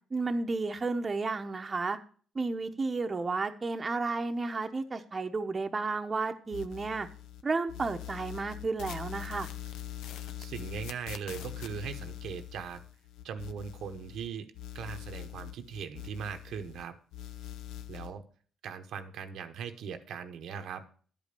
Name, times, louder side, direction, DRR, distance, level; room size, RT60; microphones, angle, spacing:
voice 1, 0.1-2.0 2.3-7.1 7.4-9.5, right 3 dB, 30° right, 5 dB, 0.9 m, -32 dB
sound 1, 6.5-7.4 7.7-14.3 14.5-16.8 17.1-18.1, left 12 dB, 90° left, 0.7 m, -43 dB
voice 2, 10.4-12.8 13.2-14.5 14.7-17.0 17.9-18.2 18.6-20.8, right 7 dB, 75° right, 7 dB, 0.9 m, -39 dB
10.5 x 5.2 x 6.8 m, 0.43 s
cardioid pair, 90°, 0 cm